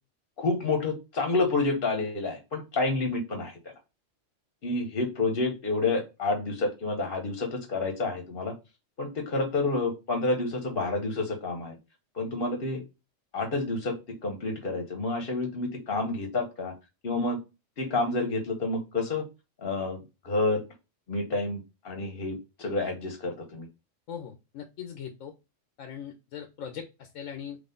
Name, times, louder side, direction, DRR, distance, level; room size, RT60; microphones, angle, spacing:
voice 1, 0.4-3.6 4.6-8.5 9.0-11.8 12.1-12.8 13.3-14.0 14.2-16.7 17.0-17.4 17.8-19.2 19.6-20.6 21.1-21.6 21.8-23.7, left 3 dB, 50° left, 3 dB, 1.0 m, -29 dB
voice 2, 24.1-25.3 25.8-27.6, left 8 dB, 85° left, 6 dB, 1.0 m, -40 dB
4.0 x 3.2 x 3.7 m, 0.27 s
omnidirectional pair, 1.3 m